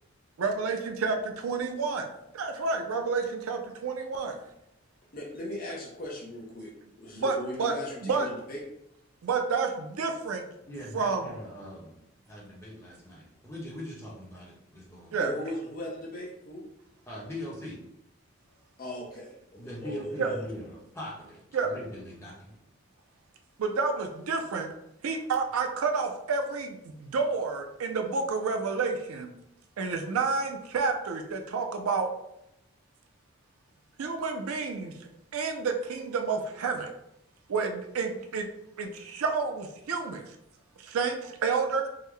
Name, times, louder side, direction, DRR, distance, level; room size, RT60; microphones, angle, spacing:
voice 1, 0.4-4.4 7.1-7.7 8.0-8.3 9.2-10.5 10.9-11.3 15.1-15.3 20.2-20.3 21.5-21.7 23.6-24.7 25.0-29.3 29.8-32.1 34.0-34.9 35.3-36.9 37.5-38.5 38.8-40.3 40.8-41.9, right 4 dB, 90° right, 5 dB, 0.4 m, -30 dB
voice 2, 5.1-6.7 7.0-8.6 15.2-16.6 18.8-20.4, left 1 dB, 40° left, -3 dB, 0.7 m, -38 dB
voice 3, 10.6-12.0 12.3-15.2 17.1-17.8 19.5-22.5, left 1 dB, 15° left, -6 dB, 0.8 m, -41 dB
3.6 x 2.1 x 3.1 m, 0.80 s
head